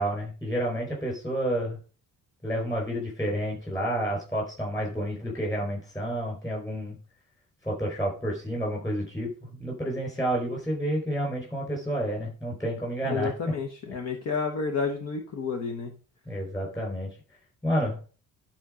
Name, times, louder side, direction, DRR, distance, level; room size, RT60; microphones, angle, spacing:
voice 1, 0.0-1.8 2.4-7.0 7.6-13.3 16.3-17.1 17.6-18.0, equal, 10° left, -1 dB, 4.8 m, -30 dB
voice 2, 13.0-15.9, left 5 dB, 50° left, 4 dB, 1.3 m, -30 dB
12.5 x 4.5 x 5.1 m, 0.37 s
cardioid pair, 170°, 33 cm